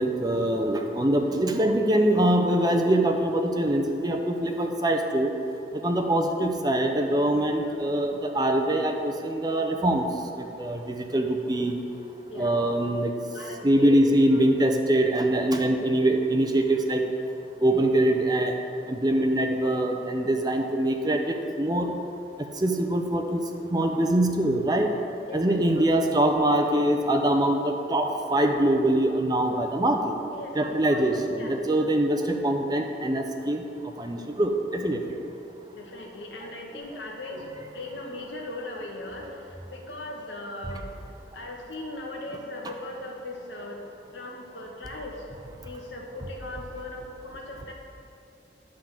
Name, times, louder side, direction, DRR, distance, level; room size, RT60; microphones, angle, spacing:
voice 1, 0.0-5.3 5.8-10.1 10.4-11.8 12.4-13.1 13.6-17.0 17.6-18.5 18.9-22.0 22.6-23.4 23.7-24.9 25.3-30.1 30.6-33.6 34.0-35.2, right 1 dB, 20° right, 4 dB, 0.6 m, -23 dB
voice 2, 13.3-14.0 14.3-14.4 25.2-25.9 30.3-31.6 35.0-35.2 35.7-37.5 37.7-40.8 41.3-43.8 44.1-45.3 45.6-47.7, left 1 dB, 85° left, 0 dB, 1.3 m, -39 dB
10.5 x 3.8 x 7.3 m, 2.7 s
head